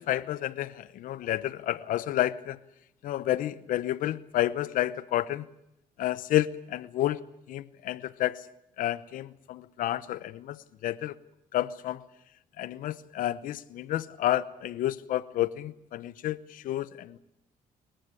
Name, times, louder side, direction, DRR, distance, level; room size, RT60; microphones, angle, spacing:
voice 1, 0.0-2.6 3.0-5.5 6.0-7.2 7.5-8.5 8.8-11.1 11.5-12.0 12.6-17.2, left 13 dB, 75° left, 18 dB, 1.0 m, -30 dB
27.5 x 14.5 x 9.8 m, 0.81 s
cardioid pair, 80°, 14 cm